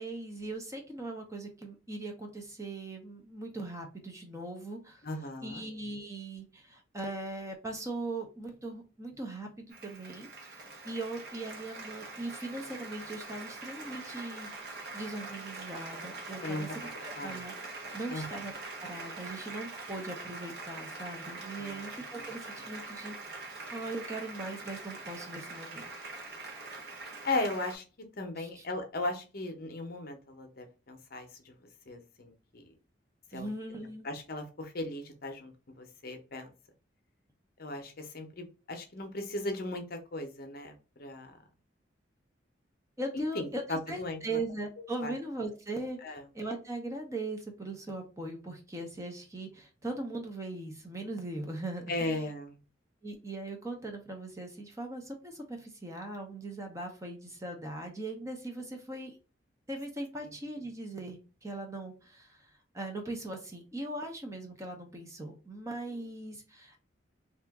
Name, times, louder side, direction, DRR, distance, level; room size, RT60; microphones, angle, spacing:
voice 1, 0.0-5.0 5.4-14.5 14.9-17.5 17.9-18.5 18.8-23.2 23.7-25.8 28.4-28.6 33.3-34.1 43.0-52.2 53.0-59.2 59.7-66.8, right 2 dB, 15° right, 3 dB, 0.6 m, -40 dB
voice 2, 5.0-5.6 16.4-16.6 17.2-17.4 18.1-18.4 21.6-21.8 22.1-22.3 27.2-27.8 28.2-31.5 31.9-32.7 33.3-33.5 34.0-35.5 35.8-36.5 37.6-41.3 43.1-44.4 45.0-45.1 46.0-46.2 51.9-52.6 60.2-60.3, left 2 dB, 50° left, 5 dB, 0.7 m, -37 dB
Applause, 9.7-27.8, right 3 dB, 55° right, 0.8 m, -43 dB
2.8 x 2.4 x 3.4 m, 0.34 s
head